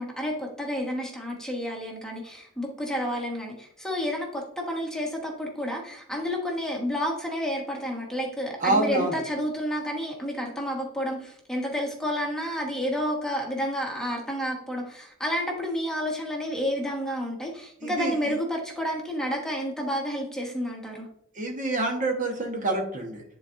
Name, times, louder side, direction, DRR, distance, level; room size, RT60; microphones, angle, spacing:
voice 1, 0.0-21.1, equal, 5° left, -1 dB, 1.3 m, -30 dB
voice 2, 8.6-9.2 17.8-18.1 21.3-23.2, right 2 dB, 40° right, 1 dB, 1.1 m, -27 dB
10.5 x 4.0 x 2.5 m, 0.70 s
head